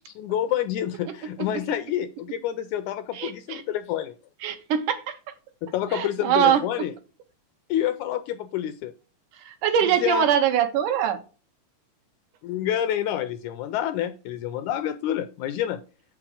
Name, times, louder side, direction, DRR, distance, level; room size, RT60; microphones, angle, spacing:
voice 1, 0.2-4.2 5.6-6.9 7.7-8.9 9.8-10.3 12.4-15.8, left 11 dB, 80° left, 1.8 m, -28 dB
voice 2, 3.1-3.6 4.4-5.2 5.9-6.6 9.5-11.2, right 9 dB, 75° right, 2.3 m, -23 dB
7.4 x 6.0 x 4.8 m
omnidirectional pair, 3.9 m